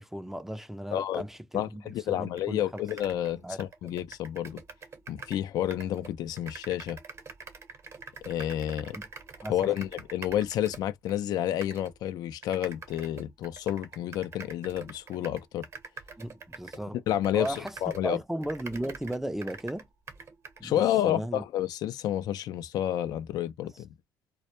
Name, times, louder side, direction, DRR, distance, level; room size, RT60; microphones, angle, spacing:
voice 1, 0.0-2.8 3.1-3.9 8.9-9.0 9.4-9.8 16.2-17.0 17.3-17.8 18.0-19.9 20.6-21.4, right 1 dB, 5° right, 0.4 m, -36 dB
voice 2, 0.9-1.2 1.5-4.6 5.1-7.0 8.2-9.0 9.5-15.7 17.1-18.2 20.6-23.9, left 11 dB, 65° left, 0.3 m, -30 dB
sound 1, 2.4-2.5 2.7-5.4 5.7-11.2 11.6-11.9 12.4-18.1 18.4-20.6, right 4 dB, 40° right, 0.8 m, -45 dB
2.1 x 2.0 x 2.9 m
cardioid pair, 90°, 7 cm